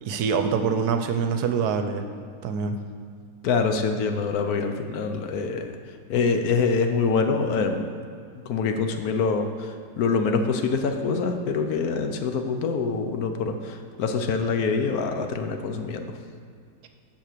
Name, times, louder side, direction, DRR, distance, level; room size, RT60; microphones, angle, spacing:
voice 1, 0.0-2.0 2.4-2.8, right 6 dB, 75° right, 7 dB, 1.1 m, -25 dB
voice 2, 3.4-5.7 6.1-7.8 8.5-16.1, left 4 dB, 70° left, 6 dB, 1.1 m, -25 dB
7.6 x 5.8 x 6.7 m, 2.2 s
omnidirectional pair, 1.8 m